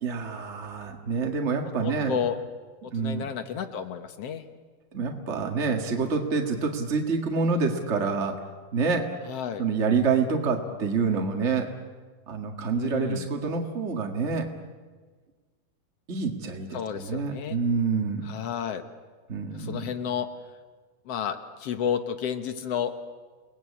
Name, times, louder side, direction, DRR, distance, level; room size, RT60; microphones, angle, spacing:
voice 1, 0.0-2.2 2.9-3.3 4.9-8.4 8.7-9.1 9.6-11.7 12.3-14.5 16.1-18.3 19.3-19.9, right 5 dB, 50° right, 3 dB, 0.8 m, -27 dB
voice 2, 1.8-2.4 2.8-4.5 9.3-9.7 12.7-13.3 16.7-17.6 18.2-18.8 19.5-20.3 21.1-22.9, left 8 dB, 70° left, 8 dB, 1.4 m, -31 dB
29.5 x 20.5 x 8.5 m, 1.4 s
omnidirectional pair, 4.3 m